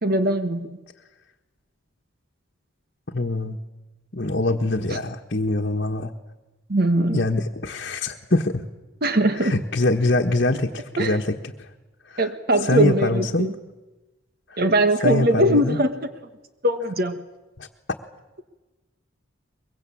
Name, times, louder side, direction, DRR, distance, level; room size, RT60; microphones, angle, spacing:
voice 1, 0.0-0.8 4.9-5.0 6.7-7.2 9.0-9.5 11.0-11.2 12.2-13.5 14.6-16.0 16.6-17.2, right 1 dB, 50° right, 9 dB, 1.4 m, -21 dB
voice 2, 3.1-3.6 4.1-6.1 7.0-8.6 9.4-11.7 12.1-12.3 12.6-13.5 14.5-14.6 15.0-15.8 17.6-17.7, left 2 dB, 50° left, 1 dB, 1.4 m, -24 dB
23.5 x 23.0 x 8.7 m, 1.1 s
head